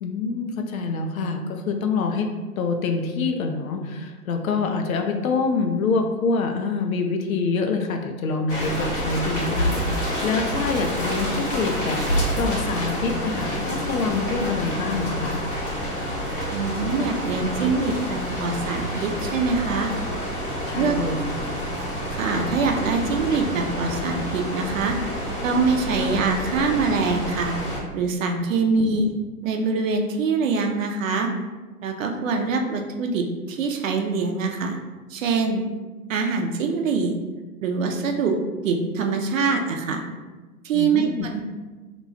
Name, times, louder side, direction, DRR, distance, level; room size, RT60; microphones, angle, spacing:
voice 1, 0.0-2.3 2.6-12.0 12.4-15.4 20.7-21.2 28.9-29.1 40.7-41.4, left 4 dB, 65° left, 4 dB, 0.6 m, -26 dB
sound 1, 8.5-27.8, equal, 80° left, 1.5 m, -28 dB
voice 2, 16.5-19.9 20.8-21.0 22.1-25.0 25.4-27.5 27.9-29.1 29.4-31.3 31.8-34.8 35.1-35.6 36.1-37.1 37.6-38.4 38.6-40.0 40.6-41.4, right 4 dB, 55° right, 3 dB, 0.6 m, -24 dB
2.9 x 2.3 x 4.0 m, 1.2 s
figure-of-eight pair, 110°, 46 cm